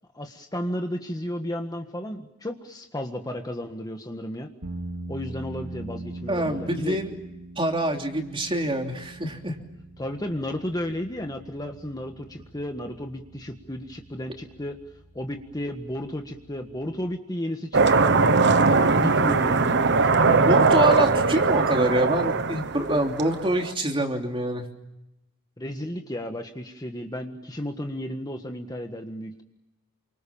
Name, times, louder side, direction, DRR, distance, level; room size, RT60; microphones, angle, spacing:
voice 1, 0.1-4.5 5.1-7.0 10.0-14.8 15.1-18.3 18.9-20.6 25.6-29.4, left 1 dB, 15° left, 4 dB, 1.6 m, -33 dB
sound 1, 4.6-17.1, right 2 dB, 75° right, 4.1 m, -42 dB
voice 2, 6.3-7.1 7.6-9.5 20.4-24.6, right 1 dB, 25° right, 3 dB, 3.3 m, -25 dB
sound 2, 17.7-23.7, right 4 dB, 50° right, 1.2 m, -20 dB
29.0 x 25.0 x 7.3 m, 0.91 s
head